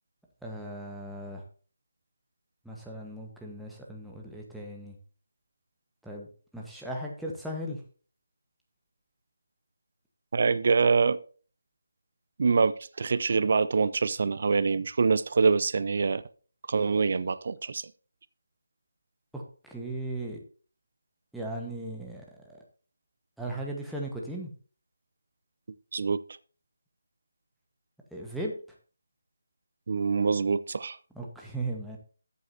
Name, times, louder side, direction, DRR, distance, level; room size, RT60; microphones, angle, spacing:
voice 1, 0.4-1.4 2.6-5.0 6.0-7.8 19.3-20.4 21.3-22.6 23.4-24.5 28.1-28.6 31.1-32.0, right 1 dB, ahead, -2 dB, 1.3 m, -37 dB
voice 2, 10.3-11.2 12.4-16.2 16.7-17.8 25.9-26.2 29.9-31.0, right 5 dB, 50° right, 15 dB, 0.5 m, -25 dB
13.0 x 8.3 x 2.8 m, 0.39 s
figure-of-eight pair, 155°, 0 cm